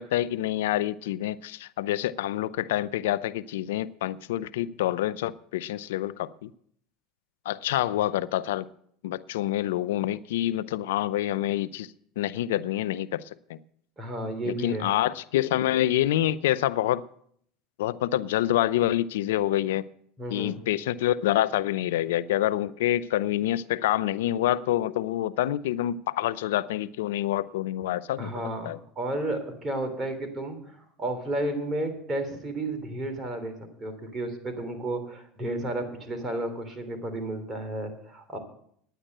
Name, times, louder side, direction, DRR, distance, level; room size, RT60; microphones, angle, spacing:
voice 1, 0.0-6.5 7.5-8.7 9.0-11.9 12.2-13.2 13.5-13.6 14.5-17.0 17.8-19.8 20.3-28.3 28.6-28.8, left 13 dB, 80° left, 0.5 m, -27 dB
voice 2, 14.0-14.9 20.2-20.6 28.2-33.5 33.8-38.4, right 1 dB, 25° right, 3.2 m, -32 dB
10.0 x 9.9 x 6.6 m
hypercardioid pair, 90°, 0 cm